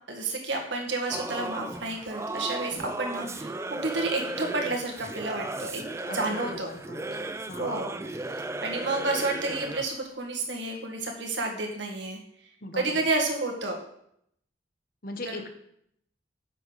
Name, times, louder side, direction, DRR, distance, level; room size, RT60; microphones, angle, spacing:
voice 1, 0.1-3.5 3.8-5.8 6.1-6.7 7.6-7.9 8.6-12.2 12.7-13.8 15.3-15.4, right 2 dB, 70° right, 1 dB, 2.0 m, -30 dB
Singing / Musical instrument, 1.1-10.0, right 2 dB, 15° right, 0.4 m, -35 dB
voice 2, 3.1-3.4 6.1-7.9 12.6-13.1 15.0-15.5, left 2 dB, 50° left, 7 dB, 1.1 m, -40 dB
10.5 x 7.3 x 4.1 m, 0.72 s
head